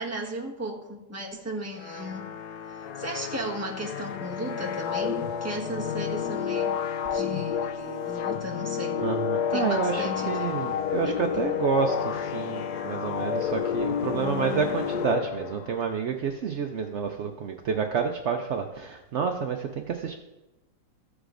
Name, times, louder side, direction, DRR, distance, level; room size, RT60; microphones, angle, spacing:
voice 1, 0.0-2.3 3.0-6.8 7.1-9.0 9.5-10.5 11.0-11.5, right 1 dB, 10° right, -2 dB, 1.2 m, -35 dB
sound 1, 1.8-15.9, left 8 dB, 70° left, 1.0 m, -30 dB
voice 2, 9.0-20.1, right 6 dB, 75° right, 4 dB, 0.6 m, -29 dB
15.0 x 8.0 x 2.6 m, 1.0 s
omnidirectional pair, 2.0 m